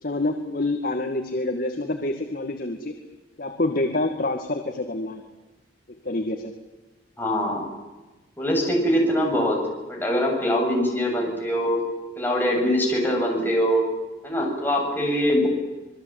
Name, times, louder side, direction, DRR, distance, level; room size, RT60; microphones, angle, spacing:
voice 1, 0.0-2.9 3.4-5.2 6.0-6.5, left 2 dB, 55° left, 4 dB, 2.2 m, -27 dB
voice 2, 7.2-7.7 8.4-9.6 9.9-11.8 12.2-13.8 14.2-15.5, equal, 10° left, -1 dB, 7.6 m, -23 dB
27.0 x 22.0 x 9.1 m, 1.1 s
head